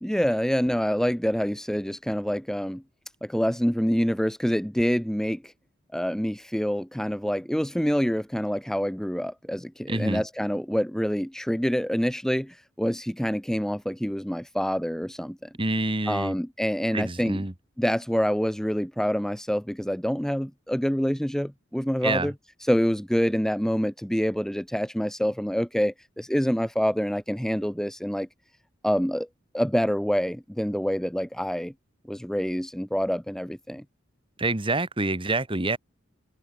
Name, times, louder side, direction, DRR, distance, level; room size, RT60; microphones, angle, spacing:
voice 1, 0.0-2.8 3.2-5.5 5.9-15.5 16.1-17.4 17.8-22.3 22.7-28.3 28.8-29.3 29.5-31.7 32.1-33.8, equal, 5° left, 0.9 m, -26 dB
voice 2, 9.9-10.2 15.6-16.3 16.9-17.5 22.0-22.3 34.4-35.8, right 2 dB, 25° right, 1.8 m, -27 dB
head